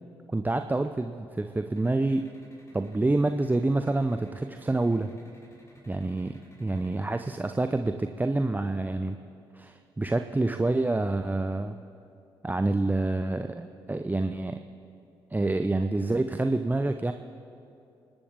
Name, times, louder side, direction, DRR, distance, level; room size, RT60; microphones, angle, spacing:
voice 1, 0.3-2.3 2.7-5.1 5.9-9.2 9.5-11.8 12.4-14.6 15.3-17.1, right 2 dB, 15° right, 7 dB, 0.7 m, -27 dB
sound 1, 1.8-7.1, equal, 25° left, 4.8 m, -57 dB
29.5 x 12.0 x 3.6 m, 2.7 s
figure-of-eight pair, 40°, 13 cm